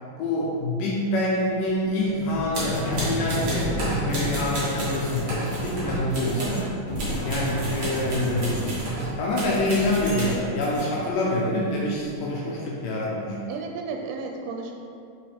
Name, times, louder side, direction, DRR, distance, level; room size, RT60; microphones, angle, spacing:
voice 1, 0.2-6.7 7.2-8.8 9.2-13.4, left 1 dB, 75° left, -4 dB, 2.1 m, -26 dB
sound 1, 2.0-10.1, equal, 55° left, 2.2 m, -32 dB
sound 2, 2.5-6.7 6.9-10.9, right 1 dB, 65° right, 1.1 m, -31 dB
voice 2, 6.3-6.8 13.5-14.7, right 4 dB, 85° right, 2 dB, 2.4 m, -33 dB
5.6 x 5.4 x 3.4 m, 2.5 s
omnidirectional pair, 4.4 m